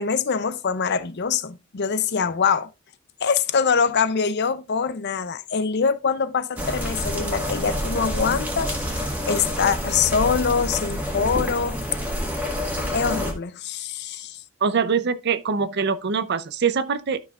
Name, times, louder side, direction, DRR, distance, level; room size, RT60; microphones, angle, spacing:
voice 1, 0.0-2.7 3.2-8.9 9.3-11.8 12.9-14.4, left 6 dB, 50° left, 0.6 m, -24 dB
sound 1, 6.6-13.3, equal, 5° right, 1.6 m, -28 dB
voice 2, 14.6-17.2, right 5 dB, 50° right, 0.5 m, -23 dB
12.5 x 5.8 x 2.4 m
head